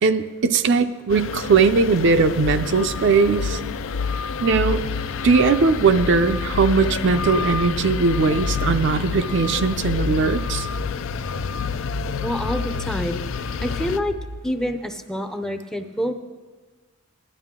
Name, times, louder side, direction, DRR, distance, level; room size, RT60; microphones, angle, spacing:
voice 1, 0.0-3.6 4.4-4.8 5.2-10.7, right 4 dB, 60° right, 9 dB, 0.5 m, -19 dB
sound 1, 1.1-14.0, left 5 dB, 65° left, 0.4 m, -28 dB
sound 2, 6.3-14.4, equal, 90° right, 1.3 m, -37 dB
voice 2, 12.2-14.2 14.4-16.1, equal, 5° left, 7 dB, 0.5 m, -27 dB
16.0 x 11.0 x 3.7 m, 1.3 s
head